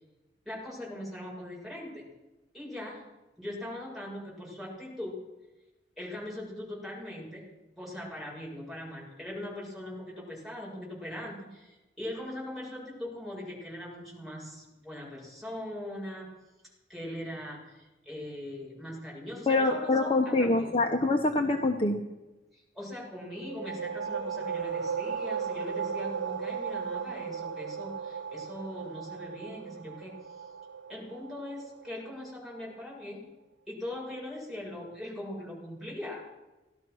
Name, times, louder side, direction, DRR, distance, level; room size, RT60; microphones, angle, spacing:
voice 1, 0.5-2.1 2.5-3.0 3.4-5.2 6.0-7.5 7.7-16.3 16.9-20.7 22.5-30.4 30.9-33.2 33.7-36.2, left 1 dB, ahead, -5 dB, 7.3 m, -40 dB
voice 2, 19.5-22.0, left 2 dB, 30° left, 3 dB, 1.0 m, -25 dB
sound 1, 23.3-32.7, right 6 dB, 85° right, 1.2 m, -36 dB
18.0 x 12.5 x 6.3 m, 1.1 s
head